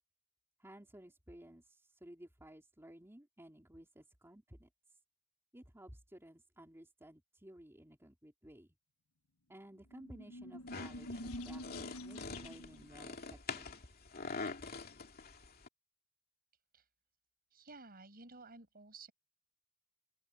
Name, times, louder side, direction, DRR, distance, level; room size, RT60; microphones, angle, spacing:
voice 1, 0.6-4.7 5.5-8.7 9.5-13.7, right 1 dB, 10° right, 3.6 m, -56 dB
sound 1, 9.8-12.9, left 1 dB, 90° left, 1.3 m, -47 dB
sound 2, 10.7-15.7, left 4 dB, 45° left, 2.7 m, -45 dB
voice 2, 17.5-19.1, right 3 dB, 45° right, 6.5 m, -54 dB
open air
head